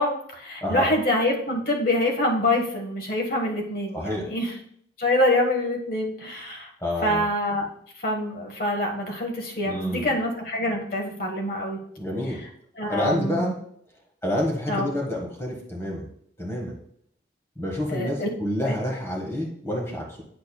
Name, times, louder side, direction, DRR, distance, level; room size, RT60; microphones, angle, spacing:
voice 1, 0.0-4.5 5.0-6.7 7.0-7.7 8.0-11.8 12.8-13.5 14.7-14.9 17.9-18.3 18.6-18.7, left 1 dB, 50° left, 1 dB, 1.4 m, -25 dB
voice 2, 3.9-4.3 6.8-7.3 9.6-10.1 12.0-12.4 12.9-13.6 14.2-16.0 16.4-16.7 17.6-20.2, left 1 dB, 15° left, -2 dB, 1.4 m, -28 dB
8.5 x 6.6 x 2.3 m, 0.65 s
head